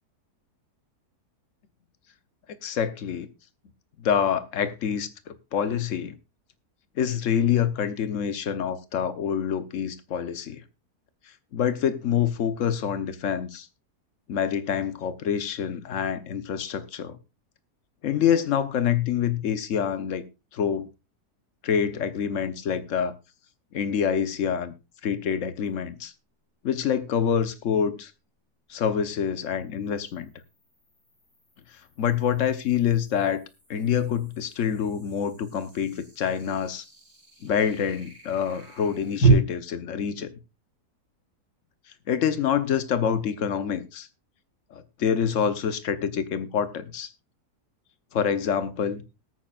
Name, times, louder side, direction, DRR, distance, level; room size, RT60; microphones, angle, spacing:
voice 1, 2.6-3.3 4.0-6.1 7.0-10.6 11.5-13.7 14.3-17.2 18.0-20.2 20.5-20.9 21.6-23.1 23.7-24.7 25.0-26.1 26.6-28.1 28.7-30.3 32.0-33.4 33.7-36.8 37.4-40.3 42.1-44.1 44.7-47.1 48.1-49.0, left 8 dB, 55° left, 1.2 m, -26 dB
sound 1, 25.6-25.7 29.2-39.3, right 5 dB, 80° left, 7.8 m, -33 dB
21.0 x 8.9 x 2.4 m
omnidirectional pair, 1.7 m